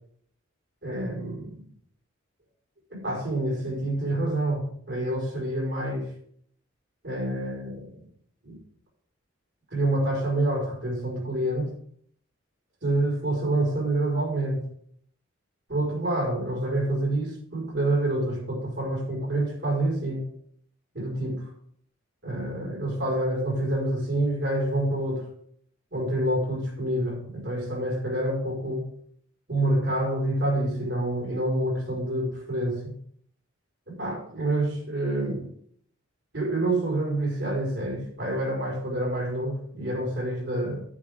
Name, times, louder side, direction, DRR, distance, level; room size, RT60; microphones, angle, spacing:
voice 1, 0.8-1.6 2.9-6.1 7.0-8.0 8.4-8.6 9.7-11.7 12.8-14.6 15.7-20.2 20.9-21.5 22.2-25.2 25.9-28.9 29.5-32.9 33.9-35.5 36.3-40.8, right 1 dB, 55° right, -2 dB, 5.1 m, -27 dB
10.5 x 8.7 x 3.6 m, 0.64 s
head